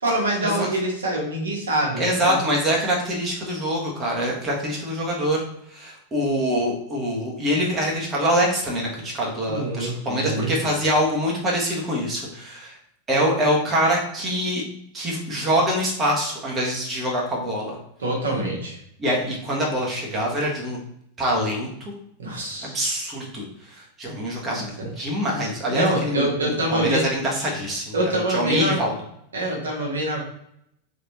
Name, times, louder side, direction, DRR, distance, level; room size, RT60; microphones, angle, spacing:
voice 1, 0.0-2.4 9.4-10.5 18.0-18.8 22.2-22.8 24.5-24.9 25.7-27.0 27.9-28.8 29.3-30.2, right 1 dB, 70° right, -2 dB, 1.3 m, -25 dB
voice 2, 2.0-5.4 5.7-12.7 13.1-14.6 14.9-17.8 19.0-20.8 21.2-21.9 22.6-28.9, equal, 20° right, -3 dB, 1.3 m, -24 dB
4.1 x 3.5 x 2.9 m, 0.75 s
figure-of-eight pair, 90°, 0 cm